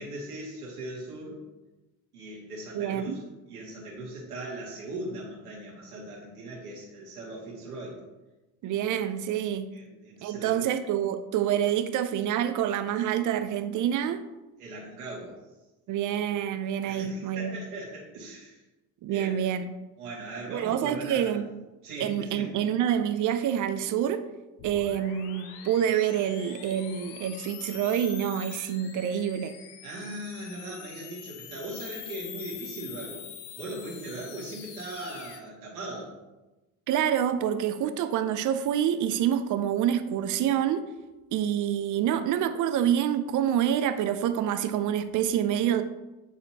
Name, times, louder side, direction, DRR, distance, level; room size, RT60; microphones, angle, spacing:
voice 1, 0.0-1.4 2.1-8.0 9.7-10.7 14.6-15.4 16.8-18.6 19.1-19.4 20.0-21.4 21.8-22.5 29.8-33.3 33.6-36.2, right 1 dB, 85° right, 2.0 m, -39 dB
voice 2, 2.7-3.1 8.6-9.7 10.2-14.2 15.9-17.6 19.0-19.7 20.5-21.5 22.0-24.2 24.6-29.5 36.9-40.8 41.3-45.8, right 10 dB, 45° right, 0.6 m, -27 dB
sound 1, 24.6-35.4, left 9 dB, 60° left, 0.9 m, -44 dB
9.4 x 4.3 x 2.8 m
hypercardioid pair, 60°, 44 cm